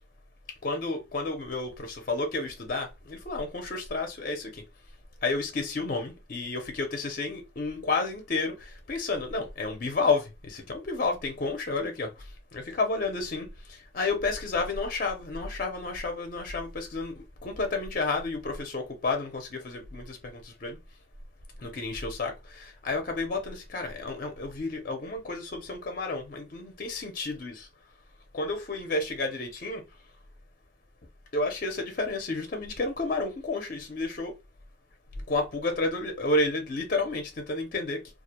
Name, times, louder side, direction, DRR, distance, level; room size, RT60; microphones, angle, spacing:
voice 1, 0.6-4.6 5.2-20.8 21.6-27.7 28.3-29.8 31.3-34.3 35.3-38.0, left 3 dB, 45° left, 0.5 m, -31 dB
2.3 x 2.1 x 2.8 m
head